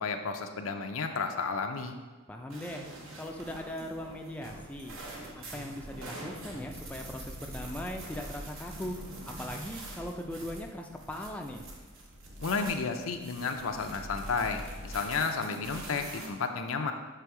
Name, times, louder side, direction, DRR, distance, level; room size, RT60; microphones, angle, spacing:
voice 1, 0.0-2.0 12.4-16.9, left 4 dB, 75° left, 6 dB, 0.6 m, -32 dB
voice 2, 2.3-2.9 3.2-5.0 5.4-9.0 9.3-11.6, left 1 dB, 5° left, 1 dB, 0.4 m, -39 dB
sound 1, 2.5-16.3, right 1 dB, 65° right, 1.0 m, -44 dB
6.8 x 3.4 x 4.7 m, 1.3 s
head